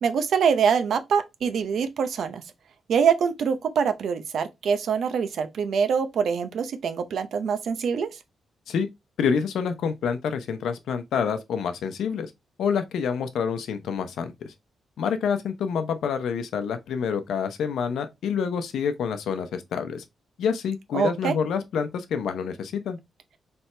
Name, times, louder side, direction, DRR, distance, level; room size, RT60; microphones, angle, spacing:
voice 1, 0.0-2.4 2.9-8.1 20.9-21.3, right 6 dB, 60° right, 0.6 m, -24 dB
voice 2, 9.2-12.3 12.6-14.5 15.0-20.0 20.4-23.0, left 6 dB, 85° left, 0.7 m, -27 dB
4.4 x 3.4 x 3.3 m
wide cardioid pair, 170°, 0 cm